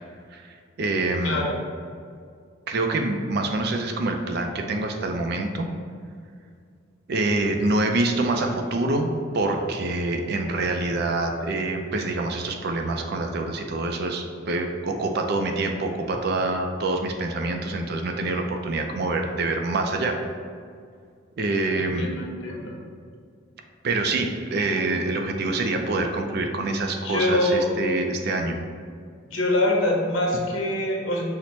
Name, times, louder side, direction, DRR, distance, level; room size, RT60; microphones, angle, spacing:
voice 1, 0.3-1.4 2.7-5.7 7.1-20.2 21.4-22.1 23.8-28.6, right 2 dB, 50° right, 4 dB, 0.4 m, -26 dB
voice 2, 1.2-1.5 21.8-22.8 27.0-27.7 29.3-31.2, left 1 dB, 85° left, -1 dB, 0.9 m, -24 dB
5.8 x 2.1 x 4.0 m, 2.2 s
head